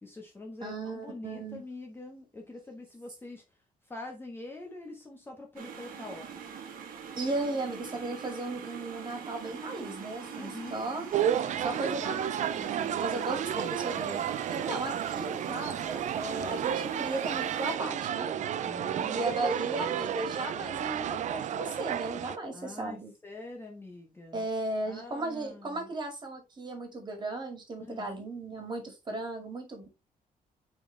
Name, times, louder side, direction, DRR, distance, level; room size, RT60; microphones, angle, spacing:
voice 1, 0.0-3.4 3.9-6.5 10.2-10.9 18.6-19.4 19.7-20.1 22.5-24.5 24.8-25.9 27.9-28.2, left 2 dB, 15° left, 1.3 m, -45 dB
voice 2, 0.6-1.6 7.2-11.1 11.6-14.2 14.5-18.3 19.0-23.1 24.3-29.9, right 2 dB, 30° right, 2.2 m, -36 dB
konvice vaření, 5.6-17.8, right 7 dB, 80° right, 1.6 m, -43 dB
sound 1, 11.1-22.4, right 9 dB, 55° right, 0.5 m, -32 dB
6.8 x 4.2 x 3.3 m
cardioid pair, 150°, 15 cm